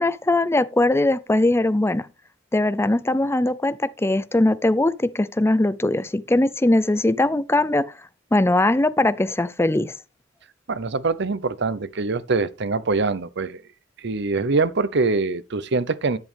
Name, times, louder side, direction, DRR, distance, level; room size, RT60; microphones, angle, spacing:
voice 1, 0.0-2.1 2.5-7.8 8.3-9.9, left 2 dB, 15° left, 0.5 m, -20 dB
voice 2, 10.7-13.6 14.0-16.2, right 3 dB, 60° right, 0.8 m, -24 dB
10.5 x 8.5 x 3.4 m
head